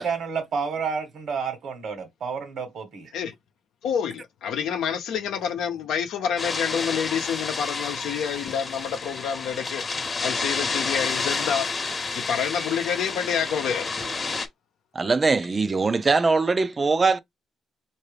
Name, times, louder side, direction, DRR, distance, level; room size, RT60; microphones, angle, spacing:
voice 1, 0.0-3.1, right 5 dB, 65° right, 1.2 m, -30 dB
voice 2, 3.8-9.8 10.2-11.7 12.1-13.9, left 8 dB, 80° left, 0.7 m, -28 dB
sound 1, 6.4-14.5, left 4 dB, 35° left, 0.9 m, -30 dB
voice 3, 14.9-17.2, right 4 dB, 30° right, 0.5 m, -21 dB
4.5 x 2.7 x 3.3 m
cardioid pair, 90°, 0 cm